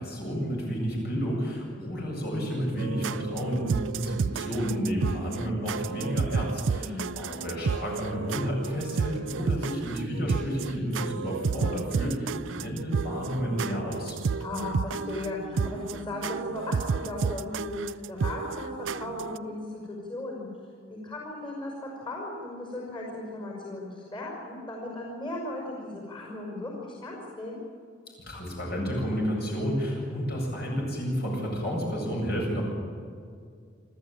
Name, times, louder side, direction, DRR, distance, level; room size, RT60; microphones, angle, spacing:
voice 1, 0.0-14.2 28.3-32.6, equal, 55° left, -1 dB, 7.9 m, -31 dB
sound 1, 2.8-19.4, right 5 dB, 70° right, 0.5 m, -31 dB
voice 2, 6.8-7.1 14.4-20.5 20.9-27.6, left 2 dB, 25° left, -2 dB, 5.4 m, -36 dB
28.0 x 13.5 x 9.0 m, 2.2 s
head